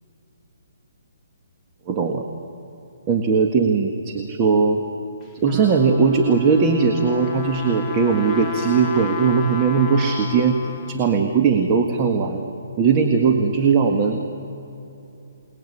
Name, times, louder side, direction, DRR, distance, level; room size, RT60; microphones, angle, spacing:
voice 1, 1.9-2.2 3.1-4.8 5.4-12.4 12.8-14.2, right 5 dB, 25° right, 3 dB, 1.8 m, -19 dB
Trumpet, 5.2-11.2, left 5 dB, 10° left, 1.9 m, -34 dB
29.0 x 20.0 x 10.0 m, 2.9 s
hypercardioid pair, 150°, 0 cm